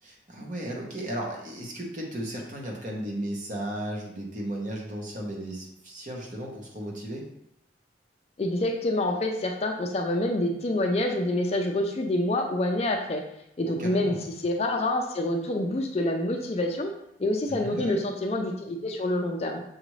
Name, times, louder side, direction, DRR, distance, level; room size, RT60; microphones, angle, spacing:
voice 1, 0.0-7.2 13.6-14.2 17.5-18.0, right 1 dB, 45° right, -1 dB, 0.9 m, -35 dB
voice 2, 8.4-13.2 13.6-14.2 14.4-16.9 17.2-19.6, left 1 dB, 35° left, 3 dB, 0.4 m, -27 dB
6.3 x 2.5 x 3.1 m, 0.79 s
head